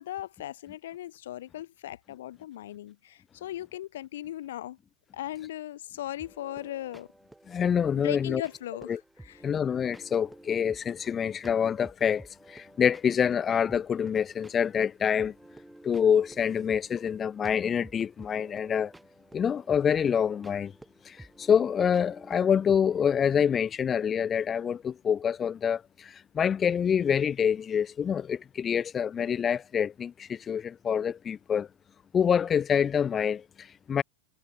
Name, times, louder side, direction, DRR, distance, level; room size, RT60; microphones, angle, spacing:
voice 1, 0.0-4.8 5.1-7.1 7.9-9.4, left 13 dB, 60° left, 2.4 m, -38 dB
sound 1, 6.2-23.1, right 1 dB, 5° right, 5.0 m, -52 dB
voice 2, 7.5-8.4 8.9-9.0 9.4-15.3 15.8-18.9 19.3-20.7 21.1-31.7 32.1-34.0, left 7 dB, 20° left, 0.5 m, -26 dB
figure-of-eight pair, 90°, 0 cm